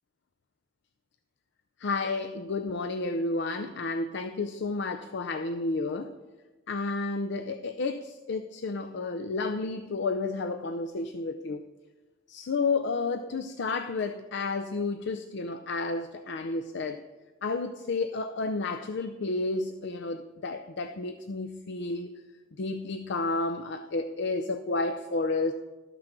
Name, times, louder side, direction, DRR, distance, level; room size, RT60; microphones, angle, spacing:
voice 1, 1.8-6.1 6.7-11.6 12.3-17.0 17.4-22.1 22.6-25.5, left 3 dB, 60° left, 8 dB, 0.5 m, -31 dB
12.5 x 6.0 x 6.6 m, 1.2 s
head